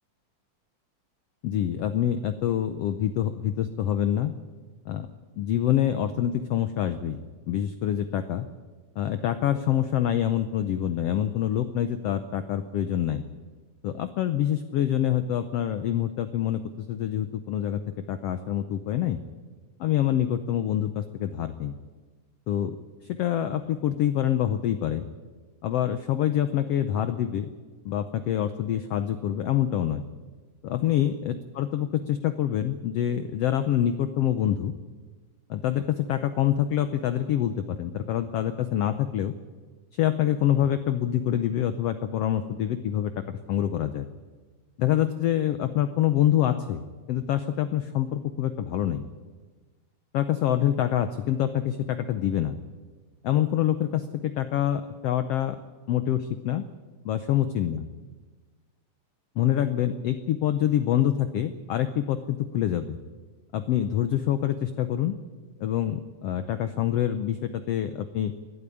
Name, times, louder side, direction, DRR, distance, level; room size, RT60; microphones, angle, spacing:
voice 1, 1.4-4.3 4.9-5.1 5.4-7.2 7.5-8.4 9.0-13.2 13.8-16.6 16.9-17.8 18.1-19.2 19.8-21.7 22.5-22.8 23.0-25.0 25.6-27.5 27.8-30.0 30.6-34.7 35.5-39.3 39.9-44.1 44.8-46.8 47.1-49.0 50.1-52.5 53.2-55.6 55.9-56.6 57.0-57.8 59.4-63.0 63.5-65.1 65.6-68.3, left 11 dB, 85° left, 11 dB, 1.3 m, -26 dB
21.0 x 12.0 x 10.0 m, 1.4 s
omnidirectional pair, 3.8 m